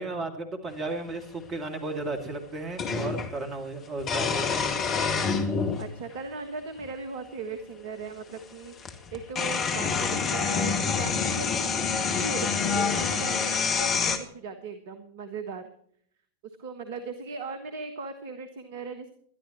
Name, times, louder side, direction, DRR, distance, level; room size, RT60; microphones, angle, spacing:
voice 1, 0.0-4.5, right 2 dB, 25° right, 6 dB, 2.3 m, -34 dB
sound 1, 1.1-1.2 2.8-3.3 4.0-5.9 6.8-6.9 8.4-8.5 8.8-14.2, left 5 dB, 30° left, 1.9 m, -27 dB
voice 2, 5.8-15.7 16.4-19.1, right 4 dB, 55° right, 9 dB, 1.5 m, -38 dB
21.5 x 12.0 x 3.0 m, 0.64 s
figure-of-eight pair, 90°, 0 cm